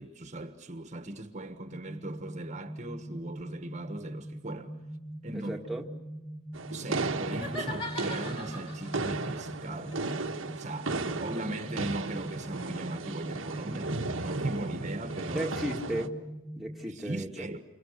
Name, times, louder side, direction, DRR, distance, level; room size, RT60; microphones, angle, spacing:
voice 1, 0.0-4.7 5.2-5.5 6.7-10.0 10.6-15.5 16.9-17.6, right 1 dB, 35° right, 1.4 m, -39 dB
sound 1, 1.7-16.7, right 1 dB, 45° left, 3.5 m, -42 dB
voice 2, 5.3-5.9 15.3-16.1 16.6-17.3, right 1 dB, ahead, 1.9 m, -34 dB
sound 2, 6.5-16.1, right 3 dB, 80° right, 1.3 m, -35 dB
sound 3, 7.3-9.0 9.9-13.0, left 2 dB, 25° left, 3.8 m, -42 dB
29.5 x 26.5 x 6.7 m
head